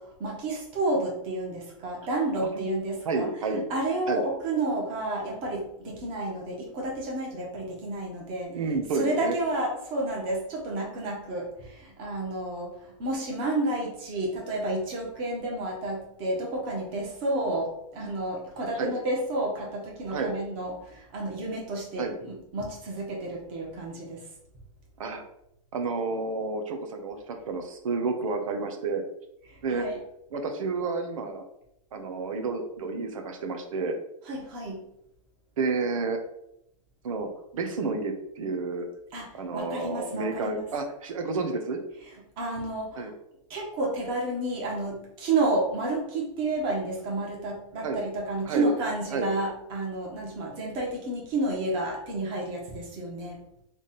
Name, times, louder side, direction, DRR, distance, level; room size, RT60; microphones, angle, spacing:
voice 1, 0.2-3.3 3.7-8.6 8.9-24.3 29.5-30.0 34.2-34.8 39.1-40.7 42.0-43.1 43.5-53.4, right 2 dB, 30° right, -1 dB, 1.3 m, -31 dB
voice 2, 3.0-3.6 4.1-4.2 8.5-9.4 18.8-18.9 20.1-20.3 22.0-22.1 25.0-25.2 25.7-29.0 29.6-29.9 30.3-31.4 31.9-34.0 35.6-36.2 37.0-38.9 39.3-41.8 43.0-43.1 47.8-48.0 48.4-48.7 49.1-49.3, right 4 dB, 80° right, 5 dB, 1.0 m, -30 dB
3.5 x 3.3 x 4.2 m, 0.79 s
supercardioid pair, 160°, 17 cm